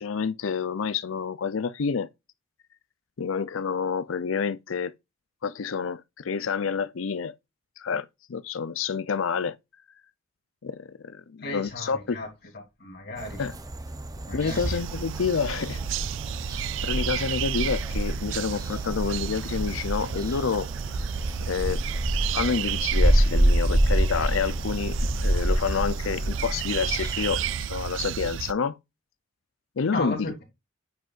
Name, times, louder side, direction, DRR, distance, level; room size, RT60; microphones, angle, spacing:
voice 1, 0.0-2.1 3.2-4.9 5.4-7.3 7.8-9.6 10.6-12.2 13.4-13.5 14.3-15.8 16.8-20.7 21.4-21.8 22.3-28.8 29.8-30.3, left 5 dB, 85° left, 0.5 m, -28 dB
voice 2, 11.4-12.3 12.5-13.5 14.3-14.8 29.9-30.4, left 2 dB, 55° left, 3.2 m, -35 dB
sound 1, 13.2-27.6, right 1 dB, 20° right, 0.7 m, -27 dB
sound 2, 14.5-28.5, right 9 dB, 65° right, 0.3 m, -33 dB
9.2 x 5.2 x 2.5 m
head